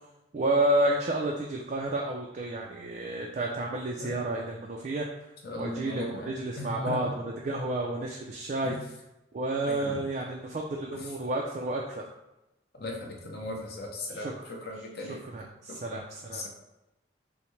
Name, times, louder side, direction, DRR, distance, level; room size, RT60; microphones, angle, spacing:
voice 1, 0.3-5.1 5.6-8.7 9.3-12.0 14.1-14.3 15.3-16.4, right 1 dB, 40° right, -1 dB, 0.4 m, -30 dB
voice 2, 5.4-7.1 8.6-8.8 9.7-10.1 10.9-11.1 12.7-15.2 15.7-15.8 16.3-16.5, left 1 dB, 55° left, 0 dB, 0.8 m, -38 dB
5.7 x 2.1 x 3.1 m, 0.94 s
head